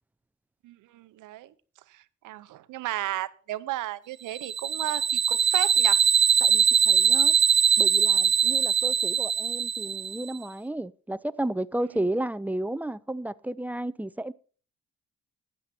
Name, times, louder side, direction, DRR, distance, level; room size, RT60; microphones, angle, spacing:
voice 1, 0.6-1.5 1.9-6.0 8.3-8.5 11.9-12.0, right 15 dB, 85° right, 0.8 m, -34 dB
sound 1, 4.3-10.3, right 7 dB, 40° right, 0.7 m, -22 dB
voice 2, 6.4-7.3 7.8-14.3, right 1 dB, 5° right, 0.4 m, -32 dB
13.0 x 9.7 x 4.3 m
cardioid pair, 90°, 30 cm